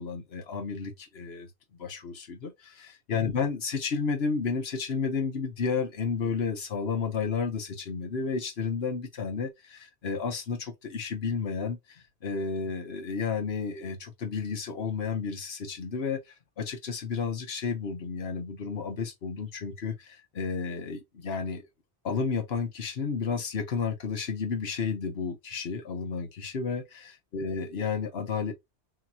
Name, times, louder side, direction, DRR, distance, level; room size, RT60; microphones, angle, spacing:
voice 1, 0.0-1.5 1.8-21.7 22.0-28.5, left 5 dB, 65° left, 1.3 m, -32 dB
6.4 x 2.9 x 2.4 m
omnidirectional pair, 1.1 m